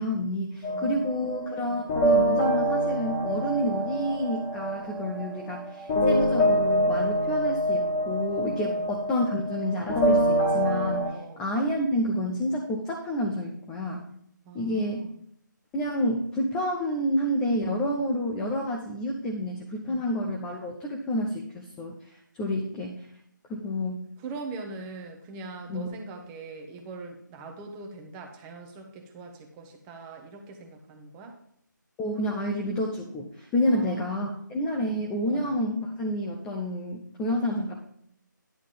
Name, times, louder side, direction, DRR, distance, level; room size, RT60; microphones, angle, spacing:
voice 1, 0.0-14.1 14.5-15.1 15.7-23.1 23.5-24.1 25.7-25.9 32.0-37.8, left 1 dB, 5° left, 0 dB, 0.4 m, -29 dB
sound 1, 0.6-11.1, right 1 dB, 20° left, 1.6 m, -26 dB
voice 2, 0.7-1.8 8.6-8.9 11.1-11.4 14.5-15.1 19.9-20.0 24.2-31.4 33.7-34.5 34.9-35.0 35.3-35.5, right 3 dB, 10° right, 3 dB, 0.9 m, -42 dB
10.5 x 3.6 x 7.2 m, 0.70 s
figure-of-eight pair, 155°, 11 cm